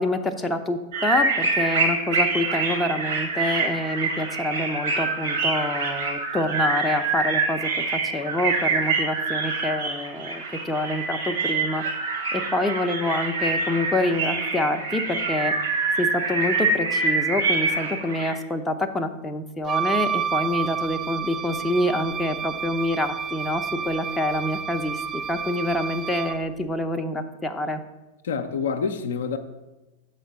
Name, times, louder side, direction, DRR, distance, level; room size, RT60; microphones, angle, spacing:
voice 1, 0.0-7.6 7.9-11.8 12.3-15.5 16.0-27.8, left 1 dB, 10° left, 6 dB, 0.6 m, -26 dB
sound 1, 0.9-18.3, right 3 dB, 55° right, 2.2 m, -26 dB
Wind instrument woodwind instrument, 19.6-26.4, right 8 dB, 30° right, 0.3 m, -30 dB
voice 2, 28.2-29.4, left 6 dB, 60° left, 7 dB, 0.5 m, -27 dB
6.4 x 4.4 x 6.6 m, 1.1 s
figure-of-eight pair, 90°, 0 cm